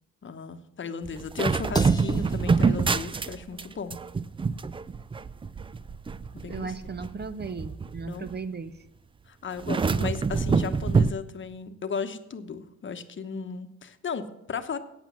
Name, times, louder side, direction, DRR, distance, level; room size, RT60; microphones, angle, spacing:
voice 1, 0.2-4.0 6.3-6.8 8.0-8.3 9.3-14.8, left 5 dB, 40° left, 8 dB, 1.0 m, -35 dB
sound 1, 1.0-3.7 3.9-8.4 9.6-11.1, right 5 dB, 20° right, 0.3 m, -26 dB
Crash cymbal, 1.7-4.3, left 3 dB, 15° left, 0.9 m, -43 dB
voice 2, 6.5-8.7, right 4 dB, 35° right, 12 dB, 0.8 m, -36 dB
8.9 x 8.2 x 7.2 m, 0.88 s
cardioid pair, 90°, 30 cm